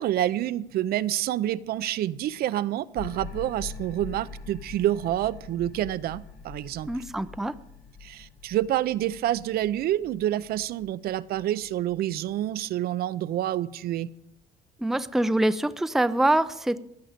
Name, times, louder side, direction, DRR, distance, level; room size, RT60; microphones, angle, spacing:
voice 1, 0.0-6.9 8.0-14.1, right 13 dB, 65° right, 15 dB, 0.5 m, -28 dB
sound 1, 2.9-12.3, left 5 dB, 75° left, 1.5 m, -44 dB
voice 2, 6.9-7.5 14.8-16.8, right 1 dB, ahead, 12 dB, 0.4 m, -24 dB
16.0 x 10.0 x 5.1 m, 0.79 s
cardioid pair, 110°, 17 cm